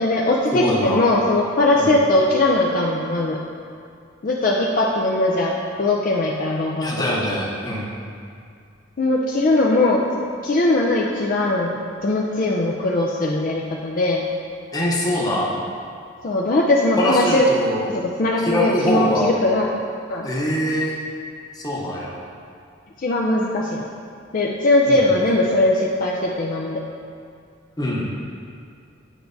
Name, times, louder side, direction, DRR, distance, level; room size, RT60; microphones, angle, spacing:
voice 1, 0.0-3.4 4.2-7.0 9.0-10.0 10.4-14.2 16.2-17.5 17.9-19.7 20.1-20.3 23.0-23.8 24.3-26.8, left 2 dB, 45° left, -3 dB, 0.4 m, -20 dB
voice 2, 0.6-1.0 1.7-1.9 6.8-7.9 14.7-15.6 17.0-17.8 18.4-19.4 20.2-21.0 21.5-22.2 24.9-25.0 27.8-28.1, equal, 20° left, -4 dB, 0.9 m, -23 dB
9.0 x 4.6 x 2.6 m, 2.3 s
head